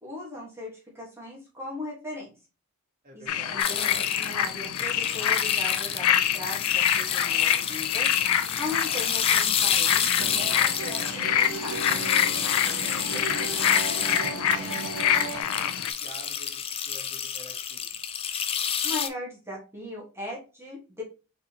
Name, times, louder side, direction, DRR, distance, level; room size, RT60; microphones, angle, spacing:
voice 1, 0.0-2.3 3.1-11.8 18.8-21.0, left 2 dB, 10° right, -4 dB, 1.5 m, -38 dB
voice 2, 3.0-3.5 12.8-13.8 14.1-18.0, right 2 dB, 40° right, -1 dB, 1.5 m, -48 dB
sound 1, 3.3-15.9, left 9 dB, 90° left, 0.4 m, -26 dB
sound 2, 3.6-19.1, left 8 dB, 25° left, 0.3 m, -30 dB
sound 3, 10.2-15.4, right 4 dB, 75° right, 0.6 m, -36 dB
4.1 x 3.8 x 2.9 m, 0.31 s
head